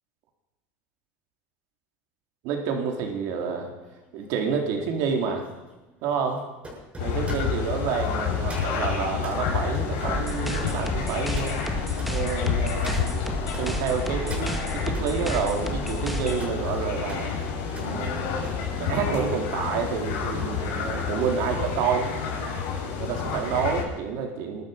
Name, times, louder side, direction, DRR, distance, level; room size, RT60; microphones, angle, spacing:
voice 1, 2.4-3.7 4.1-5.5 6.0-6.4 7.0-11.6 12.1-13.2 13.6-17.3 17.8-18.5 18.8-22.1 23.0-24.6, right 6 dB, 65° right, 2 dB, 3.8 m, -29 dB
sound 1, 3.1-13.7 14.1-15.1 15.6-19.0 19.3-19.6, right 1 dB, 20° right, 6.7 m, -46 dB
sound 2, 7.0-23.8, left 6 dB, 70° left, 5.8 m, -29 dB
sound 3, 10.1-16.5, right 1 dB, ahead, 1.8 m, -33 dB
20.5 x 12.5 x 5.4 m, 1.1 s
supercardioid pair, 125°, 6 cm